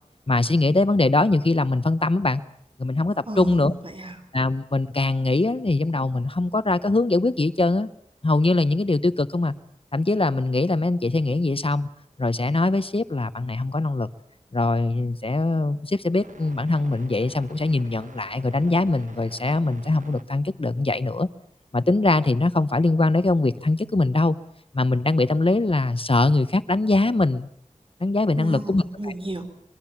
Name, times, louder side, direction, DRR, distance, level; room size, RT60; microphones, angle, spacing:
voice 1, 0.3-2.4 2.8-3.7 4.3-7.9 8.2-9.5 9.9-11.9 12.2-14.1 14.5-21.3 21.7-24.4 24.7-27.5 28.0-28.8, left 2 dB, 45° left, 14 dB, 0.9 m, -22 dB
voice 2, 3.3-4.2 28.4-29.5, right 1 dB, 45° right, 8 dB, 3.6 m, -33 dB
sound 1, 16.2-20.3 21.0-21.1, right 2 dB, 80° right, 1.7 m, -48 dB
24.0 x 22.5 x 7.3 m, 0.65 s
wide cardioid pair, 50°, 13 cm